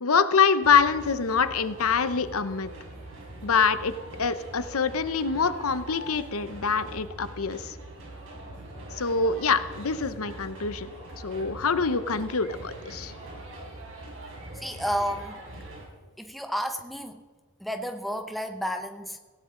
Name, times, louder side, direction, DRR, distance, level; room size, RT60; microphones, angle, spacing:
voice 1, 0.0-2.7 3.4-7.7 9.0-10.9 11.2-13.1, left 5 dB, 75° left, 13 dB, 0.8 m, -25 dB
sound 1, 0.6-15.9, right 1 dB, 60° right, 4.8 m, -43 dB
voice 2, 14.5-15.4 16.2-17.2 17.6-19.2, equal, ahead, 6 dB, 0.8 m, -31 dB
17.5 x 17.0 x 3.8 m, 1.4 s
head